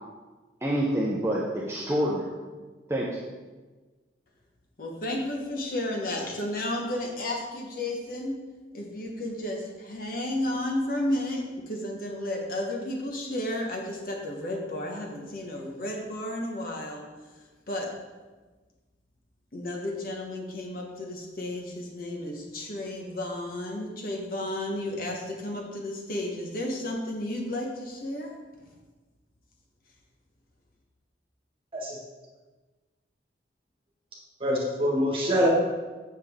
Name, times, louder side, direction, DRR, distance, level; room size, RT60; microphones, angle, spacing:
voice 1, 0.6-2.3 2.9-3.2, right 1 dB, 15° right, -4 dB, 0.7 m, -27 dB
voice 2, 4.8-8.4 8.7-17.0 17.7-17.9 19.5-28.4, left 1 dB, 50° left, 1 dB, 1.2 m, -32 dB
voice 3, 34.4-35.5, equal, 30° right, -3 dB, 1.6 m, -25 dB
7.4 x 6.6 x 3.6 m, 1.3 s
head